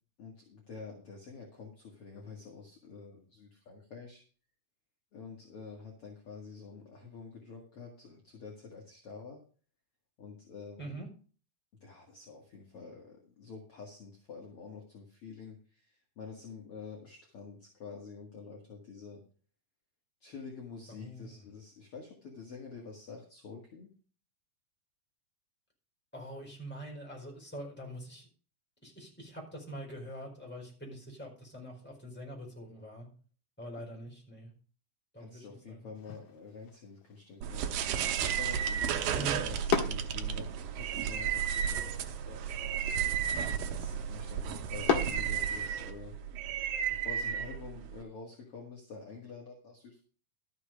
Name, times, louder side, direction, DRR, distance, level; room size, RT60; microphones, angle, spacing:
voice 1, 0.2-4.2 5.1-9.4 10.2-11.0 11.8-19.2 20.2-23.9 33.8-33.9 35.2-42.9 43.4-46.1 46.9-50.0, left 5 dB, 45° left, -1 dB, 2.6 m, -48 dB
voice 2, 20.9-21.3 26.1-28.3 28.8-33.1 33.6-34.5 35.1-35.9 39.1-39.4, right 1 dB, 5° left, -1 dB, 4.2 m, -44 dB
sound 1, 35.9-46.0, left 7 dB, 65° left, 2.9 m, -39 dB
sound 2, 37.4-48.0, right 8 dB, 80° right, 2.5 m, -33 dB
13.0 x 6.7 x 5.0 m, 0.40 s
omnidirectional pair, 4.1 m